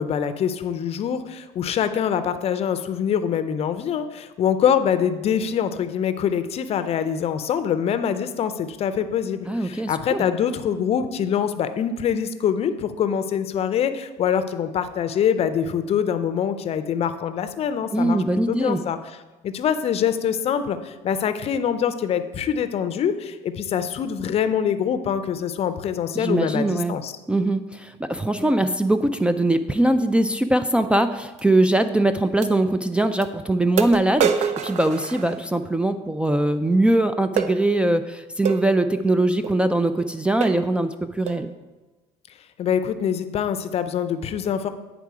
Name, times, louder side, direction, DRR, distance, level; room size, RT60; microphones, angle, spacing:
voice 1, 0.0-19.2 19.4-27.1 42.6-44.7, left 8 dB, 50° left, 11 dB, 0.5 m, -24 dB
voice 2, 9.5-10.2 17.9-18.8 26.2-27.0 27.3-41.5, right 1 dB, 10° right, 9 dB, 0.3 m, -21 dB
sound 1, 31.4-31.5 32.4-32.5 33.2-33.3 33.8-35.7 37.4-37.6 38.5-38.7 39.4-39.6 40.0-40.1 40.4-40.7 41.3-41.5, right 7 dB, 60° right, 0.5 m, -26 dB
9.5 x 3.7 x 4.8 m, 1.2 s
cardioid pair, 100°, 13 cm